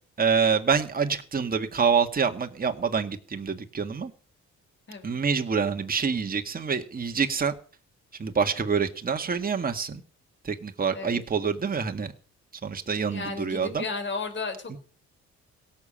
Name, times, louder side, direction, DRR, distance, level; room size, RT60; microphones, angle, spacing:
voice 1, 0.2-4.1 5.0-7.5 8.2-10.0 10.4-12.1 12.6-13.8, right 6 dB, 30° right, 5 dB, 1.8 m, -26 dB
voice 2, 4.9-5.2 10.9-11.2 13.1-14.8, left 4 dB, 40° left, 6 dB, 4.1 m, -34 dB
17.0 x 7.2 x 8.8 m, 0.40 s
cardioid pair, 90°, 30 cm